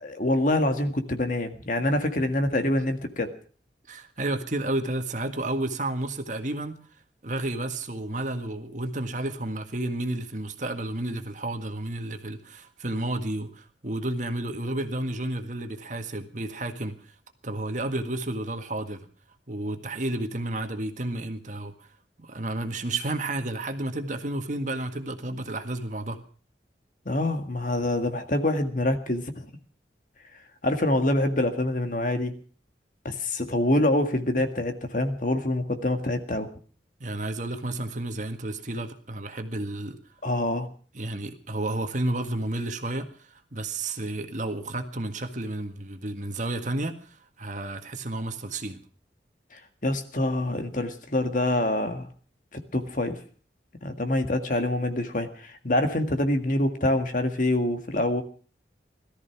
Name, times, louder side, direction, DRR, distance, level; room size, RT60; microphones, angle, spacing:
voice 1, 0.0-3.3 27.0-29.5 30.6-32.4 33.0-36.5 40.2-40.7 49.5-52.1 52.5-53.2 53.8-58.2, left 1 dB, 45° left, 7 dB, 1.8 m, -26 dB
voice 2, 3.9-6.8 7.2-17.1 17.4-19.0 19.5-21.9 22.2-26.2 37.0-40.0 40.9-48.8, right 2 dB, 45° right, 7 dB, 1.7 m, -31 dB
18.0 x 13.5 x 5.9 m, 0.41 s
head